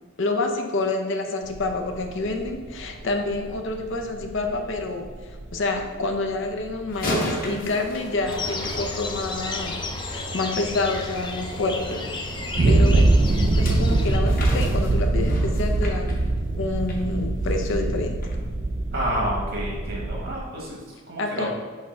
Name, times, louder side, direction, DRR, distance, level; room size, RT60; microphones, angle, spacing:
voice 1, 0.2-13.1 13.5-16.2 16.5-18.3 21.2-21.5, left 3 dB, 65° left, 4 dB, 0.7 m, -28 dB
sound 1, 1.5-20.4, right 2 dB, 35° right, 0.4 m, -24 dB
sound 2, 6.9-9.5 13.2-17.0 17.4-17.7 18.2-18.3, left 1 dB, 45° left, 1.2 m, -33 dB
sound 3, 8.3-14.2, left 2 dB, 25° left, 0.5 m, -32 dB
voice 2, 18.9-20.8 21.1-21.5, equal, 65° right, -4 dB, 1.4 m, -29 dB
5.4 x 3.5 x 5.5 m, 1.5 s
head